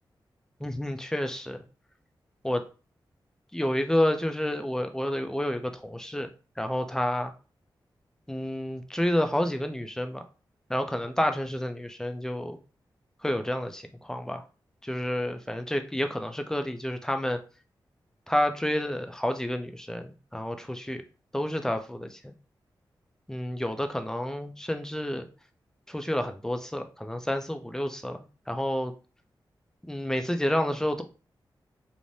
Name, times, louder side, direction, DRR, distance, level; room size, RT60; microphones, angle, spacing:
voice 1, 0.6-1.6 2.4-2.6 3.5-7.3 8.3-10.2 10.7-12.6 13.2-14.5 14.8-17.4 18.3-21.0 21.3-22.3 23.3-25.3 25.9-28.9 29.9-31.0, left 1 dB, 5° left, 6 dB, 0.4 m, -29 dB
3.2 x 2.1 x 2.6 m, 0.34 s
cardioid pair, 70°, 8 cm